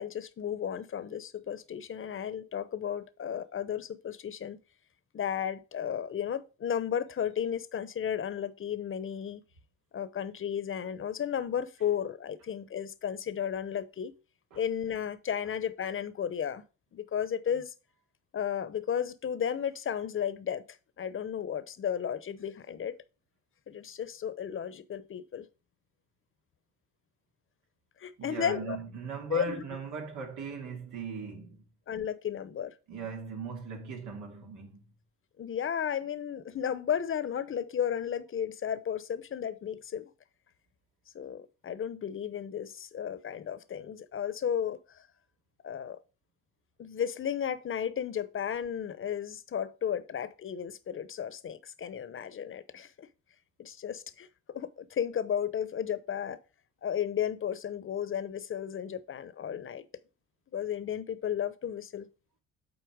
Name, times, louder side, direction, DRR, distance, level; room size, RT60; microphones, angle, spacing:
voice 1, 0.0-4.6 5.1-9.4 9.9-14.1 14.5-16.6 16.9-17.7 18.3-20.7 21.0-23.0 23.7-25.5 28.0-28.8 29.3-29.6 31.9-32.7 35.4-40.1 41.1-45.0 45.6-46.0 46.8-53.1 53.6-56.4 56.8-59.9 60.5-62.1, left 8 dB, 45° left, 0.9 m, -34 dB
voice 2, 28.2-31.6 32.9-34.8, right 5 dB, 85° right, 2.7 m, -39 dB
8.0 x 4.3 x 5.1 m
cardioid pair, 90°, 30 cm